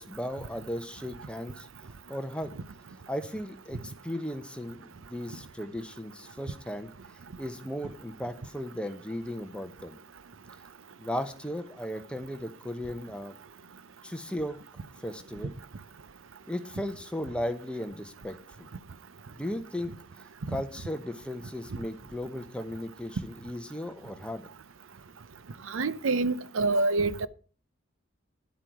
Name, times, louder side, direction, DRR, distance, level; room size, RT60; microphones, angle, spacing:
voice 1, 0.0-1.7 2.1-2.5 3.1-6.9 7.4-10.0 11.0-13.3 14.0-14.6 15.0-15.6 16.5-18.7 19.3-19.9 20.5-24.5, left 1 dB, 5° left, 0.9 m, -36 dB
voice 2, 25.7-27.3, right 3 dB, 85° right, 0.6 m, -26 dB
11.0 x 8.4 x 4.7 m
head